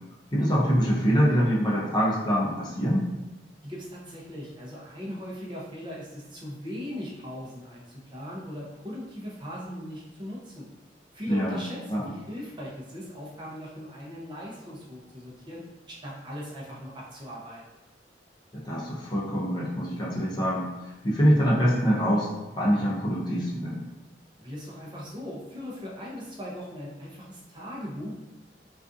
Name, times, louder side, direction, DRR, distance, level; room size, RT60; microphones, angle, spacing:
voice 1, 0.3-3.1 11.3-11.6 11.9-12.1 18.5-22.3 22.6-23.8, equal, 25° left, -6 dB, 0.5 m, -24 dB
voice 2, 3.6-10.7 11.1-17.6 24.4-28.2, equal, 25° right, -5 dB, 0.6 m, -39 dB
2.4 x 2.4 x 2.5 m, 1.0 s
head